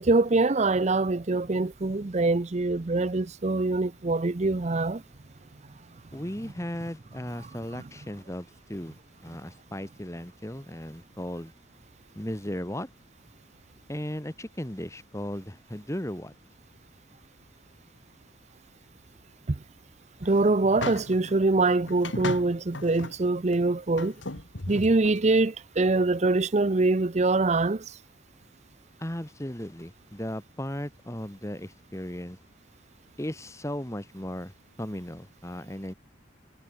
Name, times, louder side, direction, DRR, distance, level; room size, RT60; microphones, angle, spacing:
voice 1, 0.0-5.0 19.5-19.6 20.2-24.1 24.7-28.0, right 3 dB, 35° right, 0.6 m, -24 dB
voice 2, 6.1-9.0 9.2-11.5 12.2-12.9 13.9-16.3 29.0-32.4 33.2-35.9, equal, 15° left, 1.9 m, -36 dB
sound 1, 20.2-21.3 21.9-23.2 23.5-23.6 24.0-25.2, left 2 dB, 65° left, 2.2 m, -36 dB
head